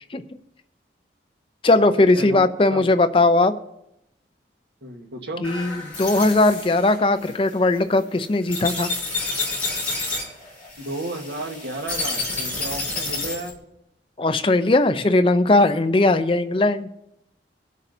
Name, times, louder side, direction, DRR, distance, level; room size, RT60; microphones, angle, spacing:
voice 1, 1.6-3.5 5.4-8.9 14.2-16.9, left 2 dB, 30° left, 10 dB, 0.5 m, -19 dB
voice 2, 2.1-2.9 4.8-5.5 10.8-13.6, right 1 dB, 75° right, 3 dB, 1.5 m, -33 dB
sound 1, 5.4-13.5, left 3 dB, 10° left, 5.2 m, -30 dB
25.0 x 8.3 x 2.7 m, 0.82 s
head